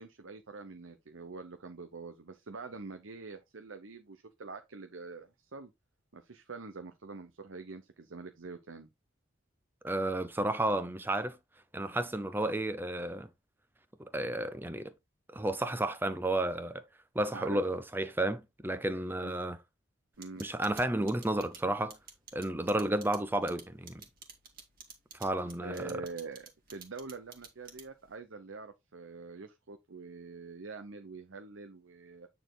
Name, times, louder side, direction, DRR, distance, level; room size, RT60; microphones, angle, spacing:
voice 1, 0.0-5.7 6.1-8.9 17.3-17.6 19.2-19.3 20.2-20.5 25.6-32.3, right 4 dB, 80° right, 0.9 m, -45 dB
voice 2, 9.8-11.4 11.7-13.3 14.0-14.9 15.3-16.8 17.1-19.6 20.4-22.0 22.3-24.0 25.2-26.0, right 1 dB, 10° right, 0.7 m, -32 dB
sound 1, 20.2-28.1, right 6 dB, 45° right, 2.2 m, -49 dB
9.1 x 4.3 x 3.9 m
head